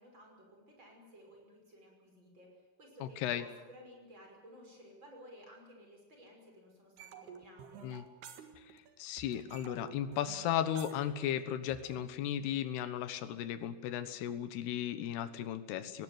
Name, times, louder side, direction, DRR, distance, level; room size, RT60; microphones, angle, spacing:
voice 1, 0.0-7.9, equal, 30° right, 1 dB, 6.4 m, -56 dB
voice 2, 3.0-3.4 7.8-8.0 9.0-16.0, left 10 dB, 85° left, 12 dB, 3.3 m, -35 dB
sound 1, 7.0-8.9 9.2-12.0, right 8 dB, 80° right, 3.8 m, -51 dB
19.0 x 18.0 x 9.6 m, 1.3 s
omnidirectional pair, 4.6 m